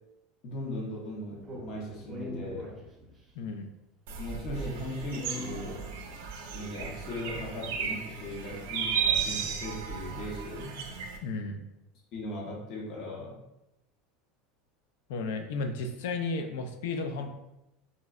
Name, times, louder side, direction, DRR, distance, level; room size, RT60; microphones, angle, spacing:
voice 1, 0.4-2.8 4.2-5.8 6.5-10.8 12.1-13.4, left 1 dB, 55° left, -2 dB, 0.8 m, -38 dB
Speech, 1.4-3.3 4.5-6.3, left 1 dB, 20° right, 0.7 m, -42 dB
voice 2, 3.4-3.7 11.2-11.6 15.1-17.3, left 3 dB, 80° left, 6 dB, 0.4 m, -33 dB
sound 1, 4.1-11.2, right 6 dB, 80° right, 0.4 m, -34 dB
3.7 x 2.0 x 2.3 m, 0.91 s
supercardioid pair, 130°, 0 cm